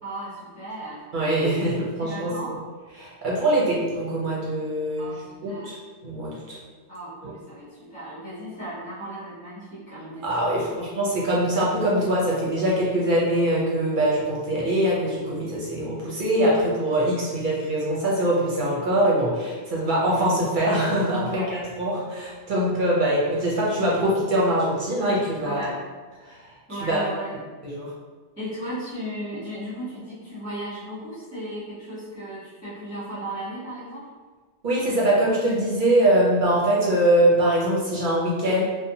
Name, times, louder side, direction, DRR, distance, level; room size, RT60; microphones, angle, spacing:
voice 1, 0.0-1.1 2.0-2.5 5.0-5.7 6.9-10.8 21.2-21.6 25.4-25.8 26.7-27.3 28.4-34.1, right 1 dB, 15° right, -12 dB, 0.7 m, -35 dB
voice 2, 1.1-2.3 3.0-5.8 6.0-6.6 10.2-25.7 26.2-27.0 27.6-27.9 34.6-38.6, right 1 dB, 55° right, -5 dB, 0.6 m, -23 dB
2.7 x 2.0 x 2.6 m, 1.4 s
omnidirectional pair, 1.2 m